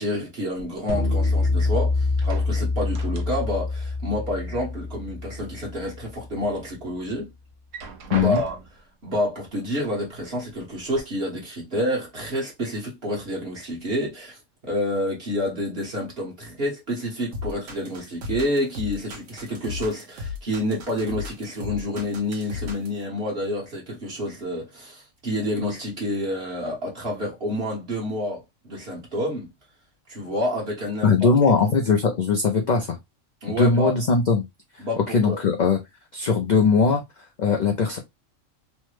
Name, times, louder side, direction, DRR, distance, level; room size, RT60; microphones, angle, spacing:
voice 1, 0.0-7.3 8.1-8.6 9.0-14.4 14.6-29.5 30.1-31.3 33.4-33.9 34.8-35.4, left 1 dB, 50° right, 1.4 m, -28 dB
sound 1, 0.5-1.8 2.1-3.7 4.0-5.0 5.4-6.2 6.7-6.8 7.5-8.9 9.9-10.0 10.4-11.0, right 3 dB, 70° right, 1.0 m, -41 dB
sound 2, 0.9-6.2, left 3 dB, 45° left, 0.9 m, -25 dB
voice 2, 8.1-8.4 31.0-33.0 33.5-34.4 35.1-35.8 36.1-37.0 37.4-38.0, left 4 dB, 65° left, 0.4 m, -20 dB
sound 3, 17.3-23.0, left 4 dB, 90° right, 1.3 m, -34 dB
3.3 x 2.1 x 3.1 m
omnidirectional pair, 1.4 m